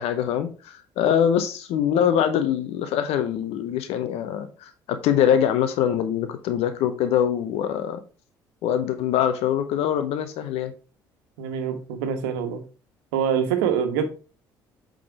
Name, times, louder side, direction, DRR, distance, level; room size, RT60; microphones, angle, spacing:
voice 1, 0.0-8.0 8.6-10.7, left 9 dB, 65° left, 0.9 m, -23 dB
voice 2, 11.4-12.6 13.1-14.0, right 8 dB, 75° right, 1.3 m, -25 dB
8.5 x 3.9 x 4.7 m
hypercardioid pair, 50°, 11 cm